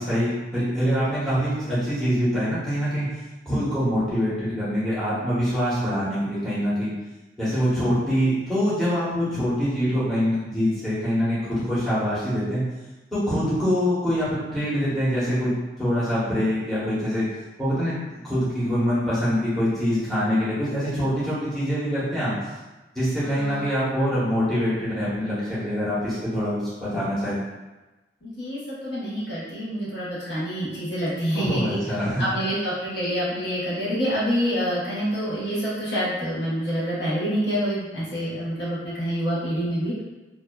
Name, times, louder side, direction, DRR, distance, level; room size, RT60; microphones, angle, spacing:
voice 1, 0.0-3.1 3.5-6.9 7.4-12.6 13.1-15.5 15.8-17.2 17.6-17.9 18.2-22.3 22.9-27.4 31.3-32.2, equal, 5° left, -11 dB, 0.8 m, -24 dB
voice 2, 23.2-23.7 28.2-31.8 32.2-40.0, equal, 80° left, -9 dB, 0.9 m, -27 dB
2.5 x 2.2 x 2.2 m, 1.1 s
head